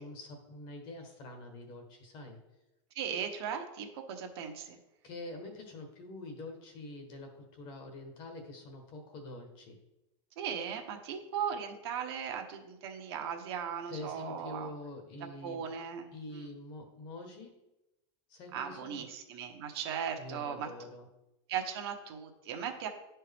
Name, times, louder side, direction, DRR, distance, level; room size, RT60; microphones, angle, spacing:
voice 1, 0.0-2.4 5.0-9.8 13.9-15.7 16.1-17.6 18.3-19.0 20.2-21.1, left 2 dB, 30° left, 4 dB, 1.2 m, -45 dB
voice 2, 2.9-4.7 10.4-14.7 15.4-16.5 18.5-20.7 21.5-22.9, right 8 dB, 60° right, 4 dB, 1.1 m, -38 dB
11.0 x 4.5 x 3.5 m, 0.93 s
supercardioid pair, 175°, 15 cm